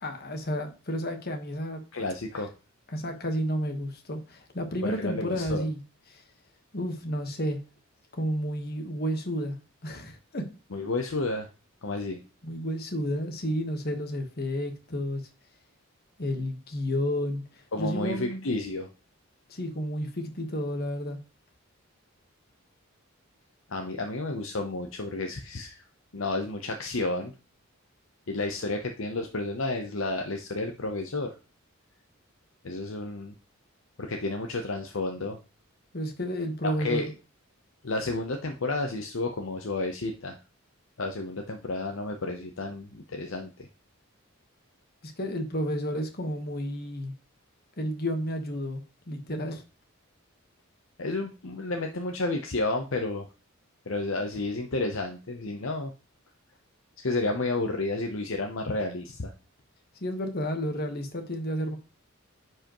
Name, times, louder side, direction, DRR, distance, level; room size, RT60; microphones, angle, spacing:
voice 1, 0.0-1.8 2.3-2.4 2.9-5.8 6.1-6.2 6.7-7.6 8.1-9.5 9.8-10.5 12.4-15.2 16.2-18.4 19.5-21.2 35.9-37.1 45.0-47.1 47.8-49.6 60.0-61.8, equal, 45° left, 1.3 m, -31 dB
voice 2, 1.9-2.5 4.8-5.6 10.7-11.5 11.8-12.2 17.7-18.9 23.7-25.8 26.1-27.3 28.3-31.3 32.6-33.3 34.0-35.4 36.6-37.1 37.8-40.4 41.0-43.5 51.0-53.3 53.9-55.9 57.0-59.3, left 2 dB, 65° left, 0.8 m, -31 dB
9.8 x 4.8 x 3.0 m
head